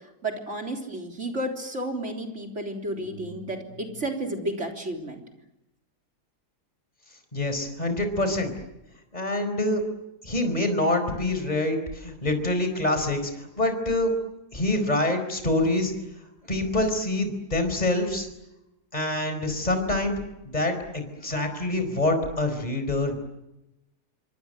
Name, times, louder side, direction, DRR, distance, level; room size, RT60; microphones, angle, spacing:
voice 1, 0.2-5.2, right 1 dB, 45° right, 2 dB, 3.9 m, -32 dB
voice 2, 7.3-8.5 9.1-9.8 10.2-14.1 14.5-15.9 16.5-18.3 18.9-20.2 20.4-23.2, left 2 dB, 25° left, 7 dB, 4.7 m, -26 dB
27.5 x 25.0 x 7.9 m, 0.90 s
omnidirectional pair, 1.7 m